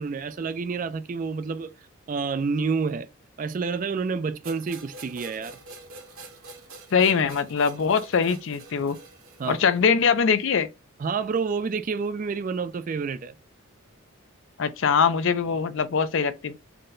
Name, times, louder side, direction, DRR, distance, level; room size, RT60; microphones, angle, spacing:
voice 1, 0.0-1.7 2.1-3.1 3.4-5.6 9.4-9.6 11.0-13.3, right 5 dB, 40° right, 0.3 m, -28 dB
sound 1, 4.4-9.8, right 3 dB, 75° right, 1.2 m, -46 dB
voice 2, 6.9-9.0 9.5-10.7 14.6-16.5, left 6 dB, 60° left, 0.4 m, -22 dB
4.2 x 2.1 x 3.7 m
head